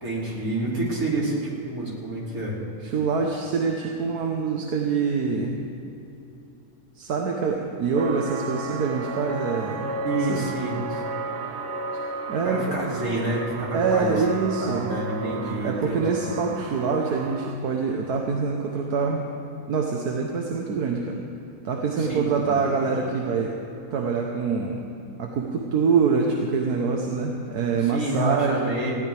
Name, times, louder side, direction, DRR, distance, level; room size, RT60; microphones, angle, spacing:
voice 1, 0.0-2.6 10.0-11.0 12.4-14.2 14.6-16.3 22.0-22.6 27.8-29.1, right 2 dB, 70° right, -4 dB, 3.4 m, -28 dB
voice 2, 2.8-5.6 7.0-10.5 12.3-12.8 13.7-14.9 15.6-19.3 19.7-21.2 21.7-23.6 23.9-24.8 25.2-28.7, right 5 dB, 85° right, 1 dB, 1.6 m, -25 dB
sound 1, 8.0-17.5, right 3 dB, 50° right, 1.3 m, -33 dB
19.5 x 16.0 x 3.4 m, 2.9 s
omnidirectional pair, 1.6 m